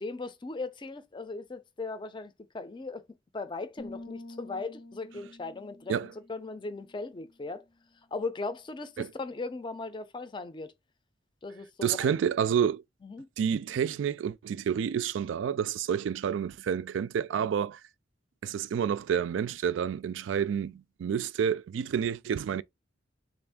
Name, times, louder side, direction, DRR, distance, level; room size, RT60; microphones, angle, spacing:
voice 1, 0.0-3.0 3.3-6.0 6.3-7.6 8.1-10.7 11.4-12.1 13.0-13.3, left 3 dB, 25° left, 0.5 m, -38 dB
sound 1, 3.8-7.5, left 1 dB, 90° left, 1.3 m, -48 dB
voice 2, 11.8-12.8 13.4-17.8 18.4-22.6, right 8 dB, 80° right, 0.3 m, -29 dB
3.4 x 2.5 x 3.5 m
head